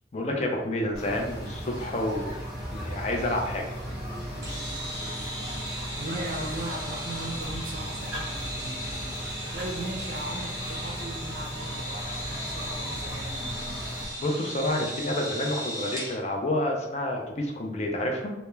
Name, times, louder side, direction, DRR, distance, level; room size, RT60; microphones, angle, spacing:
voice 1, 0.1-2.4 2.7-3.6 14.2-18.3, left 1 dB, 40° left, 1 dB, 0.4 m, -29 dB
sound 1, 0.9-14.0, equal, 5° left, 1.1 m, -37 dB
sound 2, 4.4-16.2, equal, 20° right, 0.7 m, -37 dB
voice 2, 6.0-9.1 9.5-13.8, right 1 dB, 55° right, 2 dB, 0.5 m, -38 dB
2.2 x 2.1 x 3.1 m, 1.1 s
head